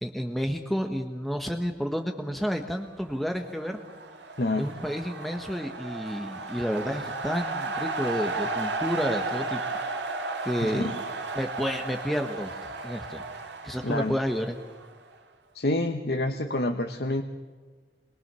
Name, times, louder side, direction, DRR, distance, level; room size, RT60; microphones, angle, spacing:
voice 1, 0.0-3.8 4.6-9.6 10.4-10.9 11.3-13.2 13.6-14.6, equal, ahead, 4 dB, 1.3 m, -30 dB
sound 1, 3.2-15.1, right 3 dB, 80° right, 2.1 m, -34 dB
voice 2, 4.4-4.7 10.6-10.9 13.8-14.2 15.5-17.2, left 2 dB, 60° left, 5 dB, 1.1 m, -27 dB
27.0 x 22.5 x 6.9 m, 1.5 s
head